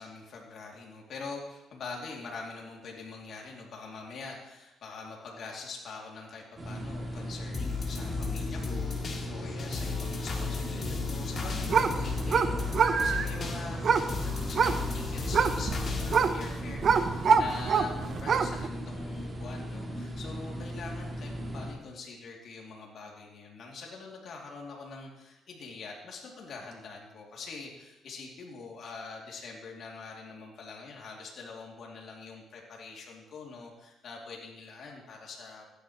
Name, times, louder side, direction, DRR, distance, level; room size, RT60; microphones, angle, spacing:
voice 1, 0.0-35.6, left 4 dB, 65° left, -1 dB, 2.8 m, -44 dB
sound 1, 6.6-21.7, equal, 30° right, 2.6 m, -38 dB
sound 2, 7.5-17.6 18.0-18.1, left 5 dB, 45° left, 2.2 m, -35 dB
sound 3, 11.3-18.7, right 6 dB, 55° right, 0.7 m, -27 dB
15.0 x 10.5 x 3.2 m, 0.95 s
cardioid pair, 90°, 0 cm